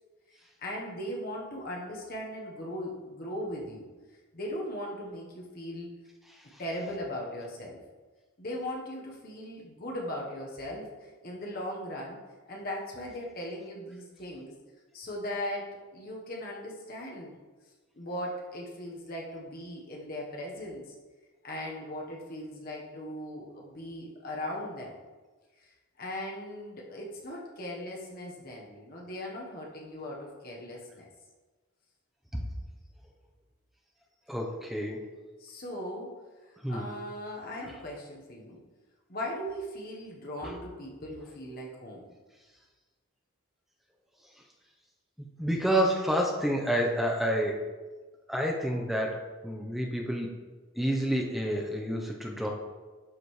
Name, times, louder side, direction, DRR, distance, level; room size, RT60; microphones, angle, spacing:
voice 1, 0.3-3.9 4.3-5.9 6.6-7.8 8.4-12.2 12.5-14.5 14.9-17.3 17.9-20.9 21.4-25.0 25.6-25.7 26.0-31.0 35.4-36.1 36.4-38.6 39.1-42.1, left 1 dB, 45° left, -2 dB, 1.1 m, -38 dB
voice 2, 34.3-35.1 36.6-36.9 37.6-37.7 45.4-47.7 48.3-50.3 50.8-52.5, equal, ahead, 0 dB, 0.7 m, -29 dB
11.5 x 5.0 x 3.2 m, 1.3 s
head